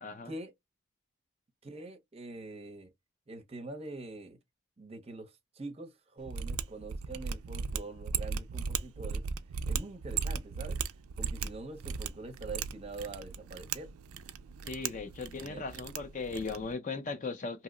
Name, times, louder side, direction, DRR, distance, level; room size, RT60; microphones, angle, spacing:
voice 1, 0.0-0.3 14.7-17.6, left 4 dB, 35° left, 0.4 m, -38 dB
voice 2, 1.6-2.9 3.3-4.4 4.8-5.3 5.6-9.2 9.7-10.8 11.2-13.9 15.4-15.6, right 2 dB, 30° right, 0.6 m, -44 dB
Mechanisms, 6.2-16.7, right 6 dB, 85° right, 0.4 m, -37 dB
2.8 x 2.0 x 3.7 m
head